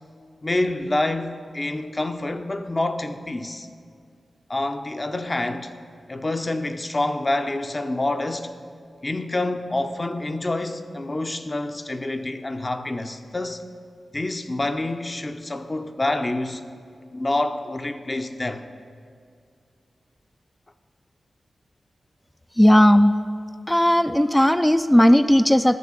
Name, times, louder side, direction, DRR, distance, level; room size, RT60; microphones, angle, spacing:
voice 1, 0.4-3.7 4.5-5.7 6.1-8.5 9.0-13.6 14.1-16.6 17.1-18.6, left 2 dB, 35° left, 0.7 m, -27 dB
voice 2, 22.6-23.1 23.7-25.8, equal, 10° left, 0.4 m, -16 dB
12.5 x 6.7 x 6.5 m
cardioid pair, 45°, 0 cm